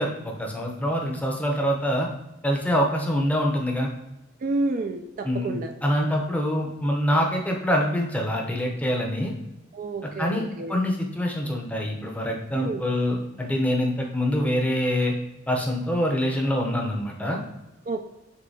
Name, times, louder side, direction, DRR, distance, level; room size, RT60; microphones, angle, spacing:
voice 1, 0.0-2.1 2.4-3.9 5.2-9.3 10.2-15.1 15.5-17.4, equal, 5° left, 0 dB, 0.6 m, -25 dB
voice 2, 4.4-5.7 9.7-10.7 12.5-12.8 17.9-18.0, right 2 dB, 40° right, 5 dB, 0.3 m, -29 dB
6.2 x 2.8 x 2.7 m, 0.96 s
head